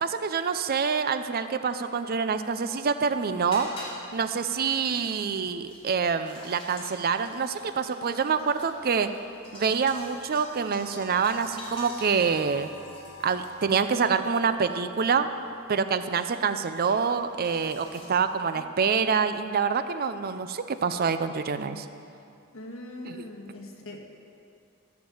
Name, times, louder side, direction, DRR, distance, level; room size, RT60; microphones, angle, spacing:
voice 1, 0.0-3.7 4.1-9.1 9.5-12.7 13.2-15.3 15.7-21.9 23.1-23.2, right 5 dB, 45° right, 10 dB, 0.5 m, -26 dB
sound 1, 2.5-18.1, left 1 dB, 25° left, 3.4 m, -47 dB
voice 2, 22.5-24.0, left 1 dB, 65° left, 2 dB, 1.6 m, -41 dB
14.5 x 7.4 x 7.3 m, 2.5 s
head